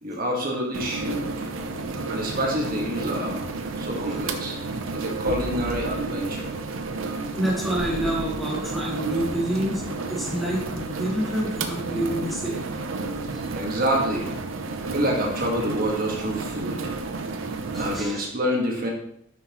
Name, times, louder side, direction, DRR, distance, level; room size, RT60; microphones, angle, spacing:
voice 1, 0.0-1.3 2.1-3.4 3.8-4.6 4.9-6.5 13.5-14.3 14.9-16.8 17.7-18.9, equal, 45° right, 0 dB, 1.6 m, -27 dB
sound 1, 0.7-18.0, right 3 dB, 80° right, 0.7 m, -31 dB
voice 2, 7.3-9.8 10.1-12.6 13.3-13.5 17.7-18.3, right 1 dB, ahead, -5 dB, 2.0 m, -28 dB
sound 2, 7.8-11.8, equal, 50° left, 1.6 m, -41 dB
9.7 x 5.8 x 3.0 m, 0.71 s
head